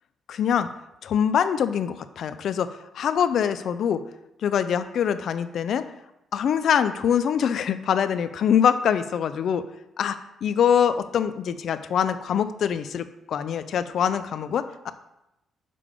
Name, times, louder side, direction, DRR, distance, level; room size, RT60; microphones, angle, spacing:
voice 1, 0.3-0.7 1.0-4.0 4.4-5.9 6.3-9.6 10.0-14.9, left 8 dB, 65° left, 12 dB, 0.4 m, -24 dB
6.8 x 3.5 x 5.0 m, 0.88 s
cardioid pair, 90°, 0 cm